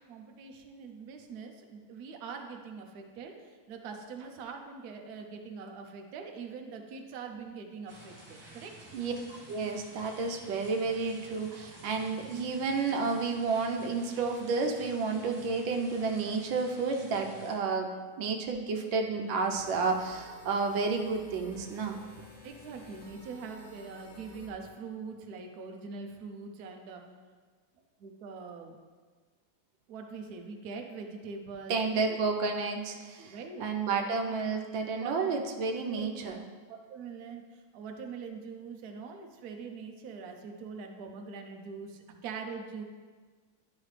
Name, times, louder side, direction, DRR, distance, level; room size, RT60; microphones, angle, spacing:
voice 1, 0.1-8.9 22.4-27.0 28.0-28.8 29.9-32.2 33.2-33.7 35.0-35.1 35.8-36.1 36.7-37.4 37.7-42.8, right 5 dB, 65° right, 3 dB, 1.1 m, -43 dB
sound 1, 7.9-17.5, right 2 dB, 15° right, 1.5 m, -52 dB
voice 2, 9.5-17.9 18.2-22.0 31.7-36.4, right 4 dB, 85° right, 3 dB, 1.5 m, -31 dB
sound 2, 19.5-24.5, left 2 dB, 75° left, 2.0 m, -52 dB
11.0 x 4.9 x 3.2 m, 1.5 s
omnidirectional pair, 2.1 m